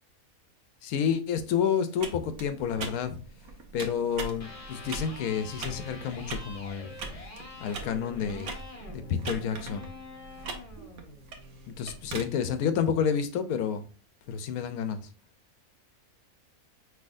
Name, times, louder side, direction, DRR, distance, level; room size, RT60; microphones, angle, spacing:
voice 1, 0.8-3.2 3.7-6.9 7.6-8.6 8.9-9.9 11.7-13.8 14.3-15.1, left 7 dB, 75° left, 1.1 m, -29 dB
sound 1, 2.0-12.2, right 4 dB, 75° right, 1.3 m, -42 dB
Electric guitar, 4.3-12.3, left 2 dB, 30° left, 0.8 m, -46 dB
5.5 x 3.0 x 2.5 m
omnidirectional pair, 1.6 m